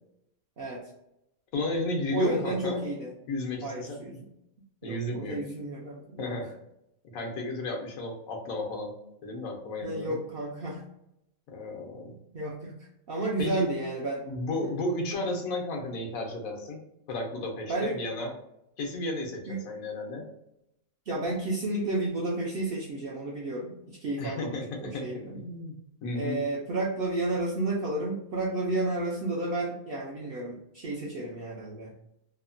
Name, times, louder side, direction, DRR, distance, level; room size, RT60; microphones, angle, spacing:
voice 1, 1.5-2.8 3.3-4.0 4.8-5.4 6.2-6.5 7.0-8.9 9.2-10.1 11.5-12.1 13.4-13.6 14.2-16.8 17.1-18.3 18.8-20.3 24.2-25.1 25.3-26.4, left 2 dB, 80° left, 1 dB, 1.1 m, -33 dB
voice 2, 2.1-3.1 3.6-4.3 4.8-6.3 9.8-10.8 12.3-12.8 13.1-14.2 14.6-14.7 17.7-18.0 19.5-19.6 21.1-25.4 26.1-31.9, right 2 dB, 65° right, -3 dB, 0.5 m, -32 dB
3.0 x 2.1 x 2.5 m, 0.82 s
omnidirectional pair, 1.5 m